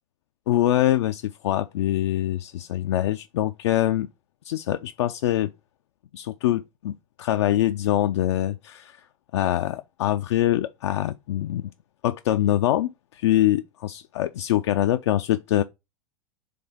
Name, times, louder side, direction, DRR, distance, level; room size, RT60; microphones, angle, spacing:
voice 1, 0.5-4.1 4.4-5.5 6.1-9.0 9.3-11.7 12.0-15.6, left 13 dB, 55° left, 0.4 m, -24 dB
5.0 x 3.5 x 5.4 m
figure-of-eight pair, 90°, 18 cm